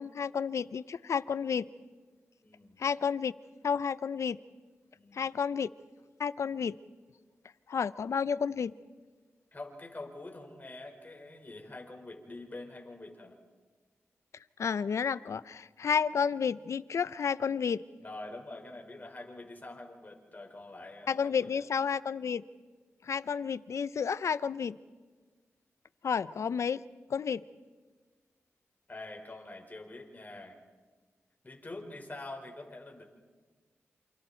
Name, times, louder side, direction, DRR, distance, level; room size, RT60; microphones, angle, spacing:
voice 1, 0.0-1.7 2.8-3.3 3.6-4.4 5.1-5.7 6.2-6.8 7.7-8.7 14.6-17.8 21.1-22.4 23.0-24.8 26.0-26.8 27.1-27.4, left 6 dB, 75° left, 16 dB, 0.7 m, -31 dB
voice 2, 2.4-2.8 4.9-5.3 9.5-13.3 18.0-21.6 28.9-30.6 31.4-33.0, left 2 dB, 35° left, 1 dB, 5.3 m, -45 dB
28.5 x 28.0 x 4.5 m, 1.4 s
cardioid pair, 60°, 5 cm